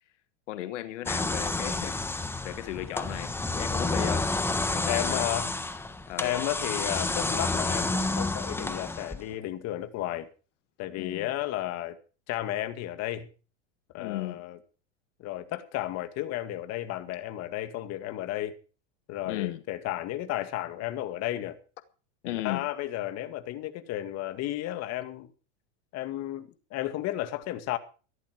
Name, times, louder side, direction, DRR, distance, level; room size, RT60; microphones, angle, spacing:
voice 1, 0.5-4.3 4.7-5.3 6.1-6.4 11.0-11.3 14.0-14.4 19.3-19.6 22.2-22.7, left 14 dB, 80° left, 1.3 m, -36 dB
sound 1, 1.1-9.3, left 2 dB, 5° left, 1.3 m, -30 dB
voice 2, 4.9-5.5 6.2-10.3 10.8-12.0 12.3-13.3 13.9-14.6 15.2-18.5 19.1-21.6 22.2-25.3 25.9-27.8, left 14 dB, 45° left, 2.2 m, -33 dB
15.5 x 13.5 x 4.7 m
supercardioid pair, 125°, 36 cm